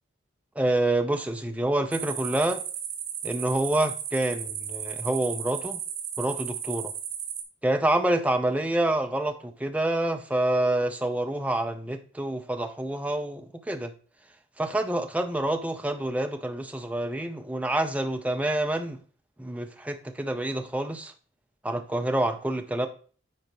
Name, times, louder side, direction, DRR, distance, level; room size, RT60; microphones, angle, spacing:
voice 1, 0.6-2.6 3.2-5.8 6.2-6.9 7.6-13.9 14.6-19.0 19.4-21.1 21.6-22.9, right 1 dB, 5° right, 0.5 m, -27 dB
sound 1, 1.9-7.4, right 9 dB, 75° right, 1.5 m, -35 dB
9.7 x 3.8 x 3.2 m
head